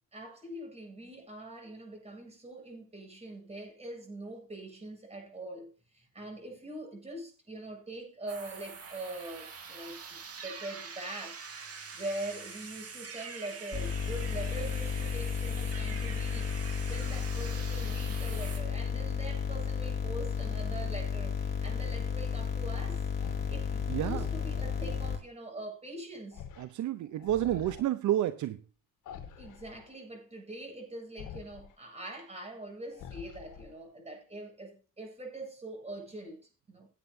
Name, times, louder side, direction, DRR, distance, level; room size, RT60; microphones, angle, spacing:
voice 1, 0.1-23.1 23.5-26.4 29.4-36.9, right 1 dB, 20° right, 7.7 m, -43 dB
sound 1, 8.3-18.6, right 5 dB, 50° right, 2.8 m, -45 dB
sound 2, 13.7-25.2, left 6 dB, 30° left, 4.4 m, -33 dB
sound 3, 23.2-25.2 26.3-26.7 27.0-27.8 29.1-29.9 31.2-31.7 32.9-33.9, left 8 dB, 80° left, 1.7 m, -46 dB
voice 2, 23.9-24.3 26.6-28.6, right 12 dB, 75° right, 0.7 m, -30 dB
17.0 x 9.2 x 2.7 m
cardioid pair, 90°, 30 cm